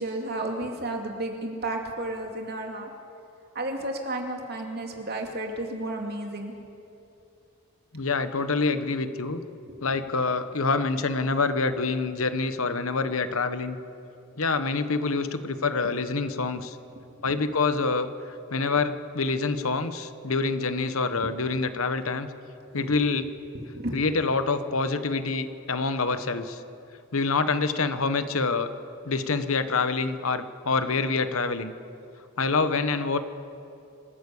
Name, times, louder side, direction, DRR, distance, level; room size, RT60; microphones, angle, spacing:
voice 1, 0.0-2.9 3.5-6.5 9.6-9.8 15.8-15.9 17.3-17.4 21.2-21.3 22.7-23.0 23.5-24.0, right 1 dB, 45° right, 2 dB, 2.5 m, -32 dB
voice 2, 7.9-9.4 9.8-13.8 14.4-16.8 17.2-22.3 22.7-23.3 23.9-26.6 27.1-28.7 29.0-31.7 32.4-33.2, left 4 dB, 75° left, 11 dB, 1.1 m, -26 dB
26.0 x 13.5 x 8.4 m, 2.6 s
head